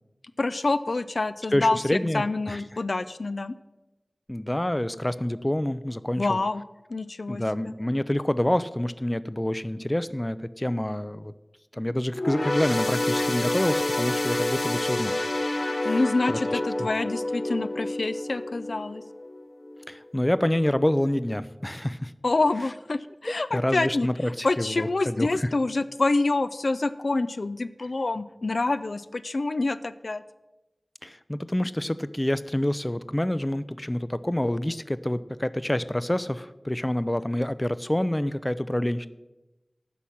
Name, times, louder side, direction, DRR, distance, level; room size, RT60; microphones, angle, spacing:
voice 1, 0.4-1.8 2.1-3.5 6.2-6.6 6.9-7.7 15.8-19.0 22.2-24.1 24.4-30.2, left 3 dB, 85° left, 13 dB, 0.4 m, -27 dB
voice 2, 1.5-2.6 4.3-6.4 7.3-11.3 11.7-15.2 15.8-16.0 16.3-16.9 19.9-22.1 23.3-25.5 31.0-39.1, left 1 dB, 20° left, 15 dB, 0.5 m, -27 dB
sound 1, 12.1-19.8 20.2-20.4 21.3-21.4, left 1 dB, 65° left, 1.3 m, -29 dB
9.9 x 6.0 x 8.5 m, 1.0 s
wide cardioid pair, 60°, 0 cm